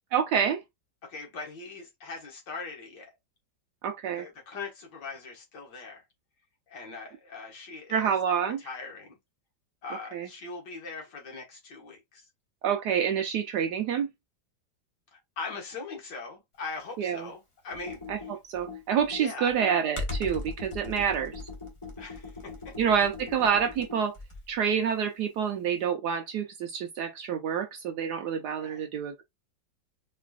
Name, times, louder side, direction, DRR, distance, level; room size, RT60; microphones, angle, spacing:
voice 1, 0.1-0.6 3.8-4.3 7.9-8.6 10.1-10.3 12.6-14.1 17.0-17.3 18.1-18.2 18.5-21.4 22.8-24.1 24.5-29.2, right 7 dB, 70° right, 1.0 m, -27 dB
voice 2, 1.0-3.1 4.2-6.0 6.7-8.2 8.4-9.2 9.8-12.3 15.1-18.3 19.2-19.6 22.0-22.7 28.6-28.9, left 4 dB, 65° left, 1.9 m, -41 dB
Computer keyboard, 17.7-24.6, left 3 dB, 20° left, 0.9 m, -39 dB
4.3 x 3.1 x 2.3 m
omnidirectional pair, 2.1 m